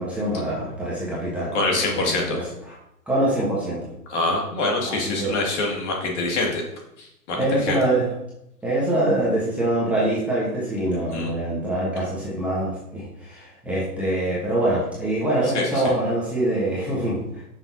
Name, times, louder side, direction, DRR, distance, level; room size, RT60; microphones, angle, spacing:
voice 1, 0.0-1.5 1.9-2.4 2.7-2.8 3.1-3.8 4.8-5.4 7.3-8.1 8.6-17.3, right 1 dB, 5° right, -8 dB, 1.1 m, -24 dB
voice 2, 1.5-2.4 4.1-6.6 7.0-7.8 11.1-11.3 15.5-15.8, left 2 dB, 45° left, -1 dB, 2.4 m, -25 dB
9.5 x 6.3 x 2.8 m, 0.82 s
hypercardioid pair, 140°, 47 cm